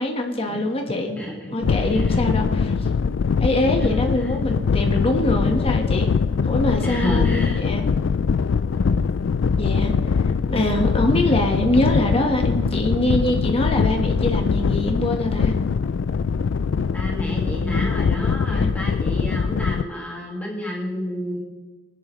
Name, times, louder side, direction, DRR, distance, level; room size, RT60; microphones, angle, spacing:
voice 1, 0.0-1.2 1.5-2.7 3.4-6.1 6.4-7.8 9.6-9.9 10.5-15.5 18.5-18.7, left 1 dB, 30° left, 2 dB, 1.5 m, -23 dB
voice 2, 1.2-2.2 2.5-2.9 3.7-4.1 6.8-7.6 16.9-21.4, left 1 dB, 10° left, -2 dB, 2.0 m, -31 dB
sound 1, 1.6-19.8, left 5 dB, 70° left, 0.4 m, -22 dB
22.5 x 10.0 x 3.2 m, 1.2 s
head